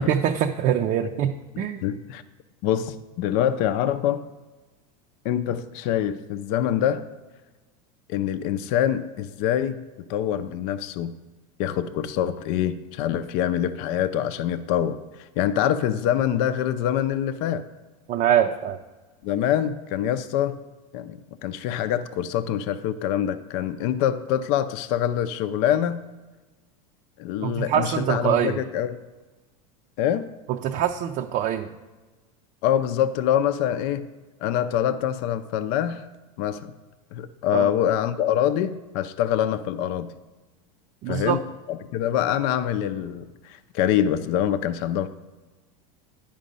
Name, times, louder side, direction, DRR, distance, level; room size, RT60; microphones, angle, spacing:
voice 1, 0.0-1.3 1.6-1.8 18.1-18.8 27.4-28.6 30.5-31.7 37.5-37.7 41.0-41.4, right 9 dB, 45° right, 4 dB, 0.5 m, -24 dB
voice 2, 1.8-2.2 2.6-4.2 5.2-7.1 8.1-9.8 10.1-11.1 11.6-17.6 19.2-20.6 20.9-26.0 27.2-29.0 30.0-30.3 32.6-34.1 34.4-36.1 36.4-36.7 37.1-40.1 41.1-41.4 41.7-45.1, left 10 dB, 60° left, 11 dB, 0.5 m, -25 dB
10.0 x 5.1 x 5.3 m, 1.2 s
supercardioid pair, 125°, 19 cm